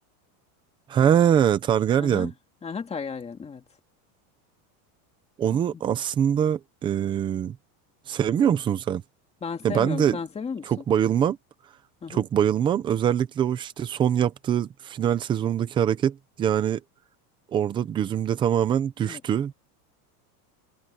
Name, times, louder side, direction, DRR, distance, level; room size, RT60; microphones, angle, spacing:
voice 1, 0.9-2.3 5.4-7.6 8.1-9.0 9.6-10.2 10.6-11.4 12.1-16.8 17.5-19.5, right 9 dB, 10° right, 0.4 m, -23 dB
voice 2, 2.0-2.3 2.6-3.6 5.5-5.8 9.4-10.7 12.0-12.2 19.0-19.2, left 5 dB, 15° left, 2.3 m, -34 dB
supercardioid pair, 170°, 45 cm